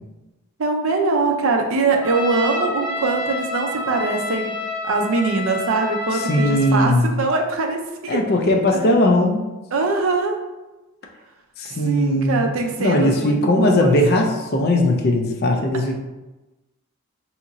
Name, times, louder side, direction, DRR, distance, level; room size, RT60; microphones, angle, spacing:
voice 1, 0.6-4.5 4.8-8.2 8.7-8.8 9.7-10.4 11.8-14.0, right 3 dB, 65° right, 3 dB, 0.5 m, -22 dB
Trumpet, 2.0-6.7, left 2 dB, 10° left, 1.4 m, -28 dB
voice 2, 6.2-7.1 8.1-9.4 11.6-12.5 12.8-15.9, left 1 dB, 45° left, 2 dB, 0.4 m, -19 dB
2.8 x 2.5 x 3.9 m, 1.1 s
head